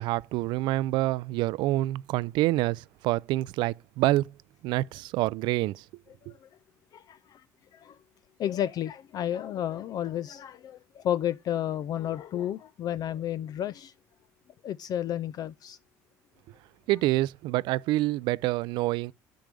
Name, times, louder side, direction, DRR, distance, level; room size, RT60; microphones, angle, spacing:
voice 1, 0.0-4.3 4.6-5.8 6.3-6.4 16.9-19.1, right 17 dB, 70° right, 0.4 m, -27 dB
voice 2, 6.9-7.4 7.7-8.0 8.4-13.9 14.6-15.8, left 11 dB, 50° left, 0.4 m, -32 dB
9.2 x 4.7 x 5.2 m
supercardioid pair, 75°, 8 cm